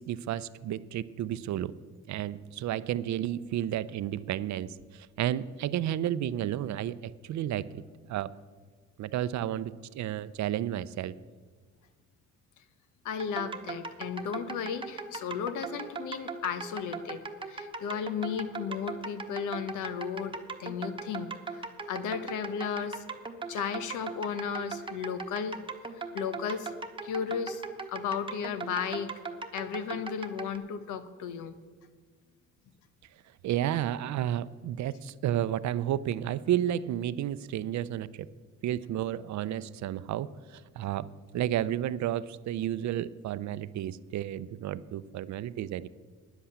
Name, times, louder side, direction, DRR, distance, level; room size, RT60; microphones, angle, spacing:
voice 1, 0.0-1.7 2.1-7.8 8.1-8.3 9.0-11.1 33.4-38.3 38.6-41.1 41.3-45.9, right 11 dB, 65° right, 17 dB, 0.5 m, -32 dB
voice 2, 13.0-23.0 23.5-25.6 26.1-26.7 27.0-27.6 27.9-29.1 29.5-31.5, left 7 dB, 90° left, 12 dB, 1.0 m, -34 dB
sound 1, 13.2-30.6, right 4 dB, 15° right, 1.0 m, -39 dB
10.0 x 8.0 x 8.4 m, 1.5 s
cardioid pair, 90°, 30 cm